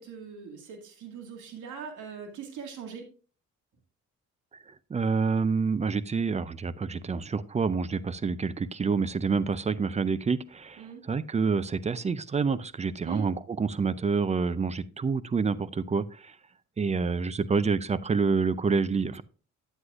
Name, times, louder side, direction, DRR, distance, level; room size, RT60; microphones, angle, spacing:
voice 1, 0.0-3.1 10.8-11.0 13.0-13.3, right 7 dB, 75° right, 3 dB, 2.0 m, -40 dB
voice 2, 4.9-16.4 16.8-19.2, right 5 dB, 25° right, 17 dB, 0.4 m, -28 dB
9.4 x 8.1 x 2.4 m, 0.36 s
cardioid pair, 90°, 30 cm